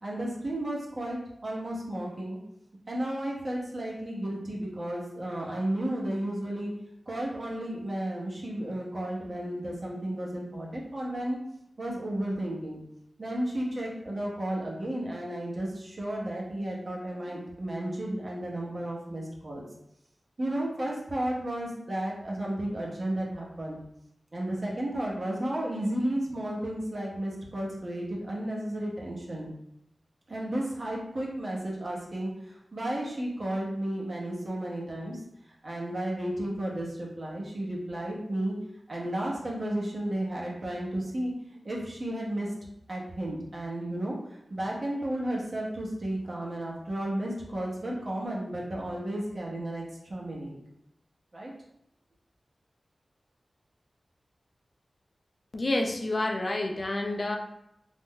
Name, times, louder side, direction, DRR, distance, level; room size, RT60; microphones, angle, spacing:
voice 1, 0.0-2.4 2.9-6.7 7.1-11.4 11.8-12.8 13.2-19.6 20.4-23.8 24.3-29.5 30.3-35.2 35.6-38.5 38.9-41.3 41.6-42.5 42.9-50.6 51.3-51.5, right 1 dB, 50° right, -3 dB, 0.8 m, -33 dB
voice 2, 55.5-57.4, left 2 dB, 50° left, 2 dB, 0.4 m, -29 dB
2.5 x 2.1 x 3.7 m, 0.79 s
wide cardioid pair, 65°, 0 cm